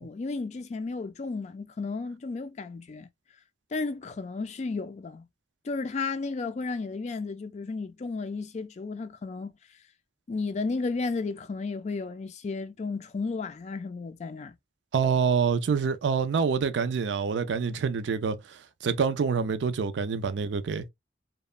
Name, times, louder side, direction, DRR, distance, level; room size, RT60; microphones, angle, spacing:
voice 1, 0.0-3.1 3.7-5.3 5.6-9.5 10.3-14.6, left 4 dB, 40° left, 0.3 m, -33 dB
voice 2, 14.9-18.4 18.8-20.8, right 6 dB, 75° right, 0.4 m, -26 dB
2.9 x 2.1 x 2.3 m
head